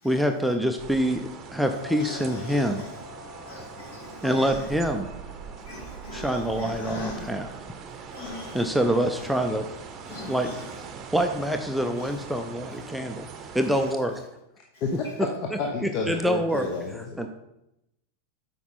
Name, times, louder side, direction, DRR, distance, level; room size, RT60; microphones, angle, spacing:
voice 1, 0.0-2.8 4.2-5.1 6.1-7.5 8.5-9.7 10.2-10.5 11.1-13.3 13.5-14.2 15.8-16.7 17.0-17.3, equal, ahead, 4 dB, 0.5 m, -26 dB
sound 1, 0.8-13.9, right 6 dB, 30° right, 0.8 m, -41 dB
sound 2, 1.7-8.8, left 6 dB, 80° right, 0.7 m, -49 dB
voice 2, 2.0-3.0 3.5-4.7 5.6-7.3 8.1-8.7 9.1-9.3 10.0-10.7 12.0-12.2 12.7-12.8 13.7-13.9 14.7-14.8 16.5-16.6, left 2 dB, 60° left, -3 dB, 2.8 m, -40 dB
voice 3, 15.2-17.3, left 4 dB, 40° left, 2 dB, 0.8 m, -30 dB
8.2 x 5.4 x 4.2 m, 0.88 s
figure-of-eight pair, 90°, 0 cm